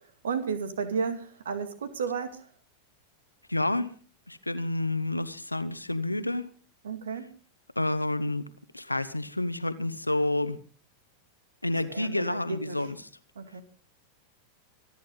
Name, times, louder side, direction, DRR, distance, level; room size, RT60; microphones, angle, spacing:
voice 1, 0.0-2.5 6.8-7.3 11.9-12.8 13.4-13.6, right 5 dB, 65° right, 10 dB, 2.2 m, -33 dB
voice 2, 3.5-3.9 4.3-6.5 7.8-8.5 8.7-10.6 11.6-13.0, left 2 dB, 85° left, 13 dB, 1.2 m, -29 dB
25.5 x 10.5 x 3.9 m, 0.40 s
figure-of-eight pair, 90°, 0 cm